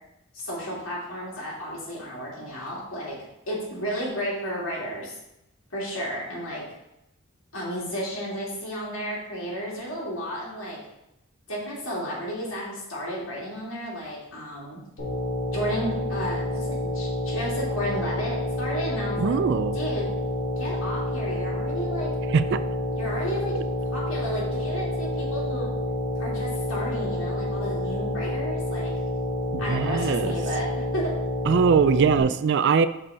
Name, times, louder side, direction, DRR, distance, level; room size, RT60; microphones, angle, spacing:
voice 1, 0.3-3.2 3.5-5.1 5.7-6.6 7.5-10.8 11.5-14.8 15.5-19.4 19.7-20.1 20.6-22.1 23.0-23.6 23.9-25.7 26.2-28.9 29.6-30.7 30.9-31.1, equal, 70° left, -5 dB, 2.6 m, -32 dB
sound 1, 15.0-32.2, left 1 dB, 50° left, 2.5 m, -29 dB
voice 2, 19.2-19.8 22.3-22.6 29.5-30.3 31.5-32.9, right 6 dB, 55° right, 14 dB, 0.3 m, -21 dB
6.1 x 5.2 x 4.2 m, 0.87 s
head